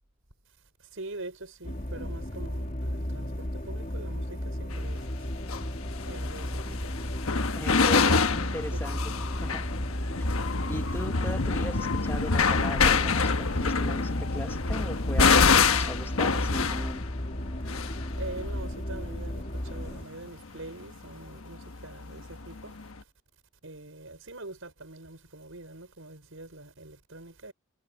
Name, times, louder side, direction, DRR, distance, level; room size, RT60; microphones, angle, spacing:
voice 1, 0.9-5.3 6.1-7.0 18.2-22.8 23.6-27.5, right 2 dB, 75° right, 5.3 m, -44 dB
sound 1, 1.6-20.0, equal, 40° left, 2.3 m, -34 dB
sound 2, 4.7-4.8 5.4-20.7 20.9-23.0, left 5 dB, 85° left, 1.3 m, -27 dB
voice 2, 7.6-9.7 10.7-17.1, left 1 dB, 10° left, 1.4 m, -39 dB
head